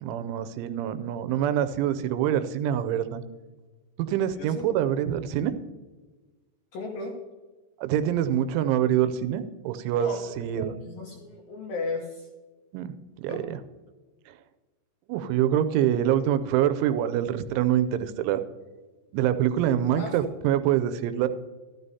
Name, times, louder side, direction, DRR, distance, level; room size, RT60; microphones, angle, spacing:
voice 1, 0.0-3.2 4.0-5.5 7.8-10.1 10.4-10.7 12.7-13.6 14.3-14.4 15.1-18.4 19.1-21.3, right 11 dB, 90° right, 12 dB, 3.1 m, -25 dB
voice 2, 4.3-4.7 6.7-7.1 9.9-12.3 13.3-13.4 20.0-20.3, left 3 dB, 80° left, 0 dB, 2.1 m, -35 dB
13.0 x 12.5 x 2.7 m, 1.3 s
omnidirectional pair, 5.4 m